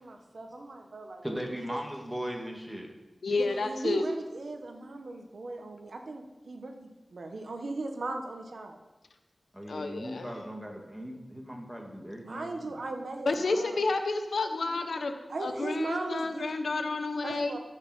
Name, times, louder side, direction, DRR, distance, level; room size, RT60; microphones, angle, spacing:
voice 1, 0.0-1.8 3.4-8.8 12.2-13.8 15.3-16.5 17.2-17.6, right 2 dB, 75° right, 4 dB, 1.2 m, -38 dB
voice 2, 1.2-2.9 9.5-12.8, equal, 5° right, 1 dB, 1.8 m, -38 dB
voice 3, 3.2-4.1 9.7-10.3 13.3-15.1 15.4-17.6, left 3 dB, 85° left, 7 dB, 0.9 m, -30 dB
13.5 x 5.5 x 5.5 m, 1.1 s
wide cardioid pair, 85°, 0 cm